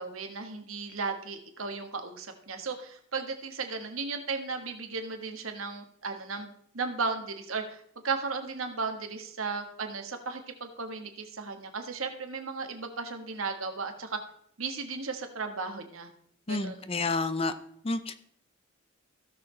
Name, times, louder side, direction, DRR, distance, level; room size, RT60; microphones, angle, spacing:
voice 1, 0.0-14.2 14.6-16.1 16.5-16.9, right 4 dB, 90° right, 5 dB, 1.5 m, -35 dB
voice 2, 16.5-17.5 17.8-18.1, left 3 dB, 30° left, 11 dB, 0.6 m, -29 dB
16.5 x 6.4 x 3.3 m, 0.66 s
head